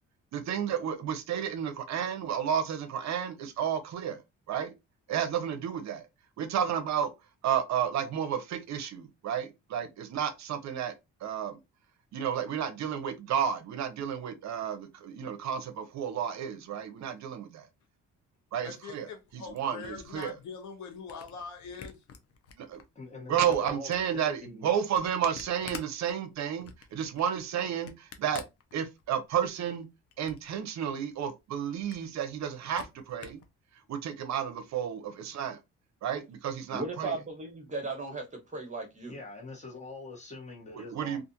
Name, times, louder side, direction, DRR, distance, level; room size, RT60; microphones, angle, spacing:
voice 1, 0.3-4.2 4.5-4.7 5.1-6.0 6.4-7.1 7.4-10.9 11.2-11.6 12.1-17.7 18.5-19.1 19.3-20.3 22.6-22.8 23.3-28.4 28.7-29.9 30.2-33.4 33.9-35.6 36.0-37.1 40.8-41.2, right 8 dB, 65° right, 0.6 m, -32 dB
voice 2, 18.6-22.0, left 5 dB, 70° left, 0.9 m, -43 dB
Camera, 19.2-22.8 23.2-29.3 29.7-30.6 30.9-31.0 31.3-31.4 31.7-33.5, left 6 dB, 50° left, 0.6 m, -49 dB
voice 3, 22.9-24.7 39.0-41.2, left 3 dB, 25° left, 1.1 m, -44 dB
voice 4, 36.7-39.2, right 3 dB, 25° right, 1.2 m, -36 dB
2.4 x 2.3 x 2.7 m
cardioid pair, 90°, 30 cm